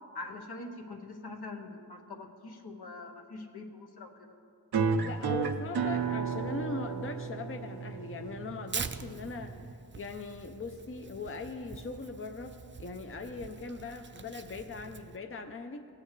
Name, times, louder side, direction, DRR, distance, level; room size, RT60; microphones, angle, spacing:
voice 1, 0.1-4.4, left 2 dB, 75° left, 2 dB, 1.1 m, -44 dB
sound 1, 4.7-9.7, right 5 dB, 75° right, 0.6 m, -33 dB
voice 2, 5.0-9.5 10.0-12.5 12.8-15.9, left 4 dB, 35° left, 6 dB, 0.6 m, -40 dB
Tearing, 8.7-15.2, right 5 dB, 30° right, 0.4 m, -44 dB
17.0 x 8.6 x 3.2 m, 2.4 s
wide cardioid pair, 70°, 39 cm